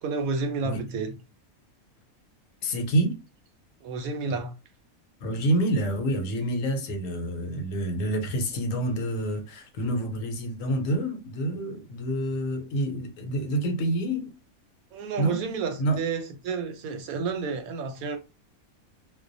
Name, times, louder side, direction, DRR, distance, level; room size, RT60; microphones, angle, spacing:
voice 1, 0.0-1.1 3.8-4.5 14.9-18.2, right 4 dB, 90° right, 1.0 m, -30 dB
voice 2, 2.6-3.2 5.2-14.3 15.2-15.4 15.8-16.0, right 1 dB, 75° left, 1.0 m, -27 dB
2.3 x 2.2 x 2.5 m
omnidirectional pair, 1.4 m